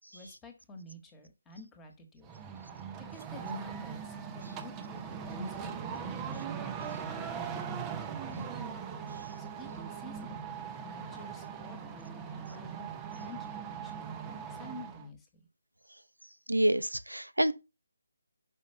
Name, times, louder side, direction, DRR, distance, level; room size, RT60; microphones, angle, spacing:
voice 1, 0.1-2.3 2.7-8.8 9.4-12.1 12.3-12.9 13.1-14.1 14.5-15.3, equal, 10° left, 1.5 m, -48 dB
sound 1, 2.2-15.1, right 7 dB, 15° right, 0.7 m, -40 dB
voice 2, 16.5-17.5, right 1 dB, 90° right, 0.8 m, -27 dB
5.9 x 5.3 x 5.6 m
figure-of-eight pair, 150°, 0 cm